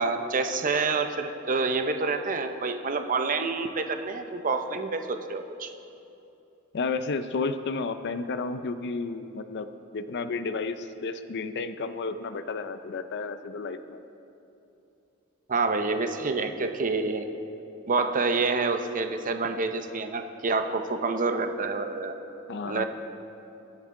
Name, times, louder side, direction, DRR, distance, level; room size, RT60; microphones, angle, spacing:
voice 1, 0.0-5.7 15.5-17.3 17.9-22.1 22.7-22.8, right 3 dB, 40° right, 7 dB, 0.7 m, -27 dB
voice 2, 6.7-9.7 9.9-14.0 22.5-22.8, left 4 dB, 55° left, 10 dB, 0.5 m, -32 dB
22.5 x 8.0 x 3.8 m, 2.8 s
head